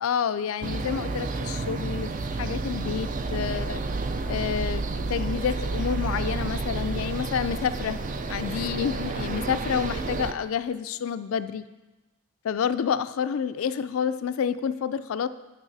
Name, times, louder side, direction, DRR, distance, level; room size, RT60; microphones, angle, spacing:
voice 1, 0.0-3.8 4.3-8.0 8.3-11.6 12.4-15.3, left 7 dB, 70° left, 13 dB, 0.3 m, -29 dB
sound 1, 0.6-10.3, right 3 dB, 35° right, 0.4 m, -30 dB
10.5 x 6.1 x 4.0 m, 1.1 s
head